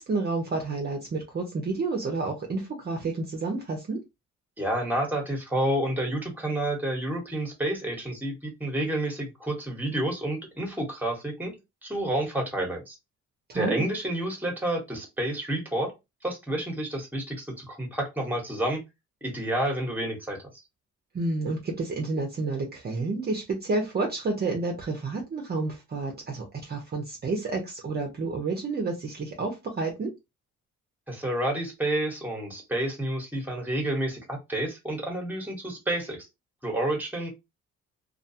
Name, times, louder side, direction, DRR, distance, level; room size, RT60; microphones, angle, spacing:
voice 1, 0.0-4.0 13.5-13.8 21.1-30.1, right 3 dB, 35° right, 0.6 m, -30 dB
voice 2, 4.6-11.6 11.8-13.0 13.5-15.9 16.2-18.8 19.2-20.4 31.1-36.3 36.6-37.3, right 1 dB, 5° right, 1.0 m, -29 dB
2.4 x 2.2 x 2.7 m
cardioid pair, 90°, 30 cm